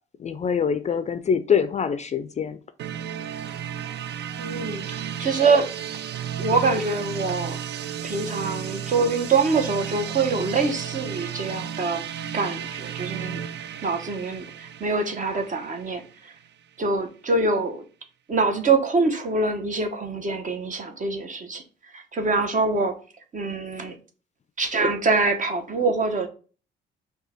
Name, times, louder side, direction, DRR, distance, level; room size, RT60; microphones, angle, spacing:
voice 1, 0.2-2.6, left 7 dB, 35° left, 0.4 m, -24 dB
sound 1, 2.8-16.5, right 8 dB, 60° right, 0.4 m, -34 dB
voice 2, 4.4-5.7 6.2-7.6 8.0-12.0 12.3-13.4 13.8-16.0 16.8-17.8 18.3-21.6 21.9-22.9 23.3-24.0 24.6-26.3, right 3 dB, 40° right, 1.0 m, -24 dB
5.4 x 2.3 x 4.2 m
cardioid pair, 90°, 20 cm